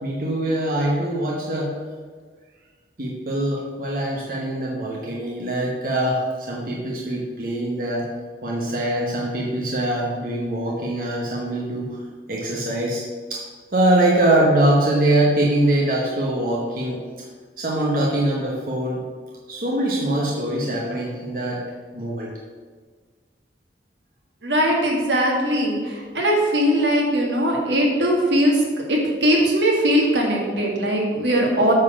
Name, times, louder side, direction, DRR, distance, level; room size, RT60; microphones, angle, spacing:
voice 1, 0.0-1.7 3.0-8.1 8.4-11.9 12.3-13.0 13.3-13.4 13.7-17.0 17.6-19.0 19.5-21.6 21.9-22.3, right 1 dB, 50° right, -4 dB, 1.1 m, -23 dB
voice 2, 24.4-28.6 28.9-31.7, equal, 85° right, -1 dB, 1.9 m, -20 dB
8.7 x 4.3 x 6.2 m, 1.5 s
head